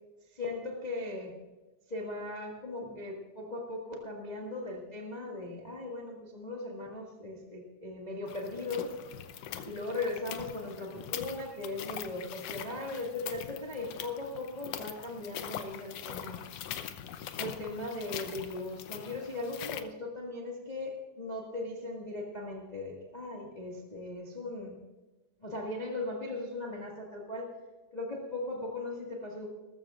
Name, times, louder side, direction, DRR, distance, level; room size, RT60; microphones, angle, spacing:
voice 1, 0.3-1.3 1.9-8.9 9.6-16.4 17.4-24.8 25.4-27.5 27.9-29.5, left 2 dB, 20° left, -1 dB, 1.0 m, -38 dB
sound 1, 8.3-19.8, left 10 dB, 80° left, 1.4 m, -42 dB
20.5 x 13.5 x 2.5 m, 1.2 s
omnidirectional pair, 3.8 m